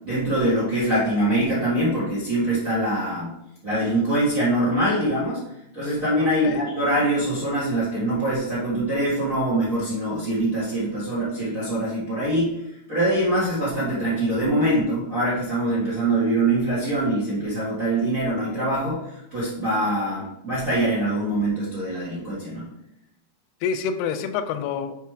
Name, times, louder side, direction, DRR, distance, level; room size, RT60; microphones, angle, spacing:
voice 1, 0.0-3.3 3.6-5.4 5.7-12.5 12.9-19.0 19.3-22.7, right 1 dB, 50° right, -8 dB, 0.9 m, -23 dB
voice 2, 6.2-6.6 23.6-24.9, left 7 dB, 90° left, 10 dB, 2.7 m, -27 dB
5.8 x 4.7 x 4.6 m, 0.83 s
omnidirectional pair, 4.6 m